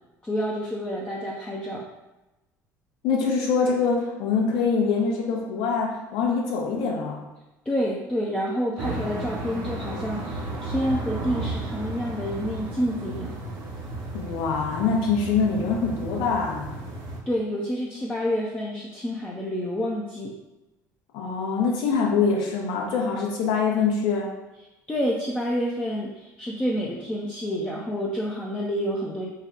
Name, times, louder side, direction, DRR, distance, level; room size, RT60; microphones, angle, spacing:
voice 1, 0.2-1.8 7.6-13.4 17.3-20.3 24.9-29.3, equal, 15° left, -4 dB, 0.7 m, -28 dB
voice 2, 3.0-7.3 14.1-16.7 21.1-24.3, left 5 dB, 60° left, -1 dB, 1.0 m, -24 dB
sound 1, 8.8-17.2, right 2 dB, 55° right, 0.9 m, -33 dB
4.5 x 2.4 x 3.7 m, 1.0 s
figure-of-eight pair, 60°, 10 cm